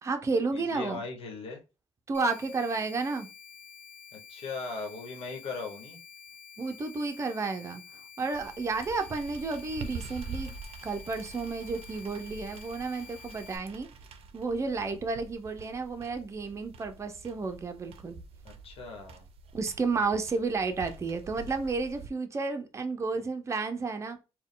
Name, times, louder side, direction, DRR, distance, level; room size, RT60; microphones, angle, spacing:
voice 1, 0.0-1.0 2.1-3.3 6.6-7.8 8.2-10.6 10.8-13.9 14.3-18.2 19.5-24.2, right 4 dB, 30° right, 0.6 m, -32 dB
voice 2, 0.5-1.6 4.1-6.0 14.8-15.0 18.4-19.2 23.1-23.2, left 4 dB, 70° left, 1.1 m, -39 dB
sound 1, 2.1-13.6, left 6 dB, 20° left, 1.2 m, -50 dB
sound 2, 8.3-22.1, right 4 dB, 70° right, 0.5 m, -46 dB
4.2 x 2.3 x 3.8 m
cardioid pair, 115°, 10 cm